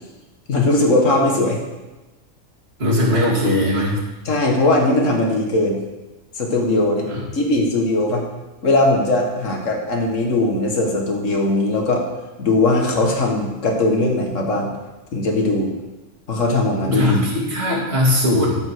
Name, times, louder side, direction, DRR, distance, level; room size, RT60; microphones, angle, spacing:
voice 1, 0.5-1.6 4.3-5.8 6.4-7.1 7.3-8.3 8.6-12.0 12.4-14.7 15.1-15.7 16.3-17.2, left 2 dB, 65° left, 1 dB, 2.0 m, -19 dB
voice 2, 2.8-4.0 7.0-7.3 16.9-18.5, left 1 dB, 50° right, -5 dB, 3.1 m, -19 dB
13.0 x 5.3 x 6.2 m, 1.1 s
omnidirectional pair, 1.4 m